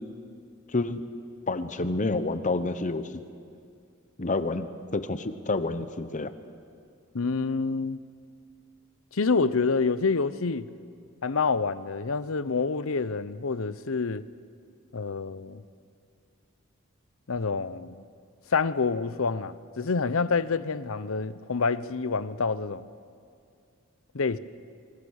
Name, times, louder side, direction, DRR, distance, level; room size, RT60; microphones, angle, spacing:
voice 1, 0.7-1.0 1.5-3.2 4.2-6.3, left 2 dB, 35° left, 1.0 m, -29 dB
voice 2, 7.1-8.0 9.1-10.7 11.2-14.2 14.9-15.6 17.3-18.0 18.5-22.9 24.1-24.4, left 4 dB, 70° left, 0.8 m, -27 dB
25.5 x 25.0 x 6.5 m
head